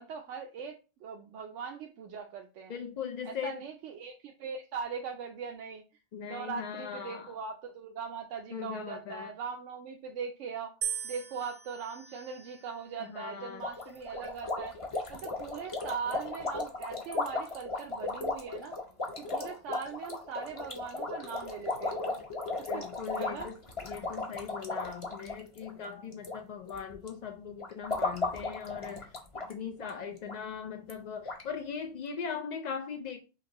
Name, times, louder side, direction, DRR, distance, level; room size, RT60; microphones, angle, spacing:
voice 1, 0.0-2.8 3.2-5.8 6.2-10.8 11.0-14.8 15.1-18.8 19.2-22.2 22.6-22.9 23.1-23.5, right 6 dB, 85° right, 0.9 m, -40 dB
voice 2, 2.7-3.6 6.1-7.3 8.5-9.3 13.0-13.6 22.7-29.1 29.3-33.2, left 7 dB, 65° left, 0.4 m, -40 dB
sound 1, 10.8-13.0 13.8-14.4, right 9 dB, 65° right, 0.3 m, -40 dB
sound 2, 13.6-26.4 26.6-27.1 27.6-29.5 29.8-29.9 30.3-30.4 30.9-31.0 31.2-31.4, left 3 dB, 30° left, 0.8 m, -36 dB
5.7 x 2.5 x 2.9 m
omnidirectional pair, 1.2 m